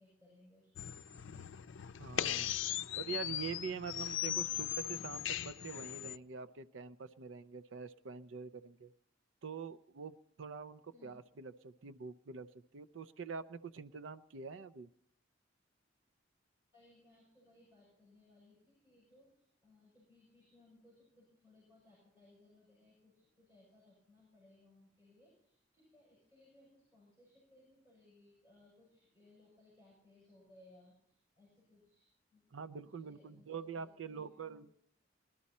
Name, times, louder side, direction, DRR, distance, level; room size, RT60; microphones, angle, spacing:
voice 1, 0.0-1.4 10.9-11.2 16.7-32.5 32.8-34.6, left 2 dB, 15° right, -6 dB, 7.3 m, -65 dB
sound 1, 0.8-6.2, left 11 dB, 85° left, 0.5 m, -39 dB
voice 2, 2.0-2.5 3.0-8.9 9.4-12.5 12.7-14.9 32.5-34.7, right 5 dB, 85° right, 12 dB, 0.5 m, -45 dB
20.5 x 12.5 x 4.2 m, 0.67 s
head